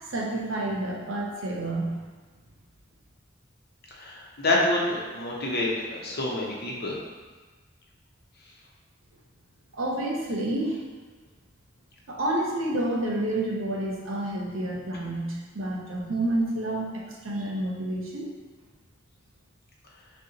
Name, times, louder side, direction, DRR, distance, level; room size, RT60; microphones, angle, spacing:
voice 1, 0.1-1.9 9.7-10.8 12.1-18.3, right 1 dB, 90° right, -1 dB, 0.8 m, -29 dB
voice 2, 3.9-7.0, left 2 dB, 55° left, -3 dB, 0.8 m, -27 dB
6.4 x 2.4 x 2.8 m, 1.4 s
head